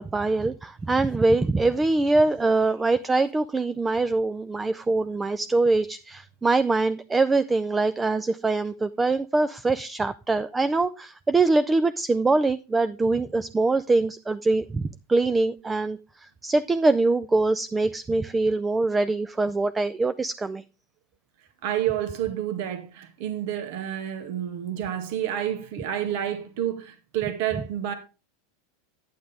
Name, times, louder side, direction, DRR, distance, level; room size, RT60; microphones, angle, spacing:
voice 1, 0.0-20.6, right 3 dB, 15° right, 0.4 m, -23 dB
voice 2, 21.6-27.9, right 11 dB, 65° right, 1.7 m, -29 dB
9.5 x 9.4 x 3.5 m
hypercardioid pair, 115°, 0 cm